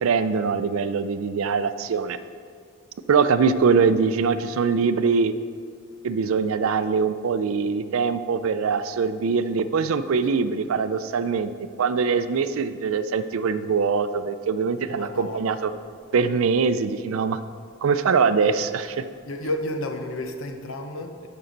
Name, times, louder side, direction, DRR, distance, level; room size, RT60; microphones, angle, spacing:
voice 1, 0.0-2.2 3.1-5.3 6.0-11.5 11.8-15.7 16.1-17.4 17.8-19.0, right 5 dB, 75° right, 12 dB, 0.4 m, -23 dB
voice 2, 14.9-15.6 19.2-21.3, left 1 dB, 70° left, 5 dB, 0.8 m, -31 dB
12.5 x 5.4 x 3.9 m, 2.2 s
head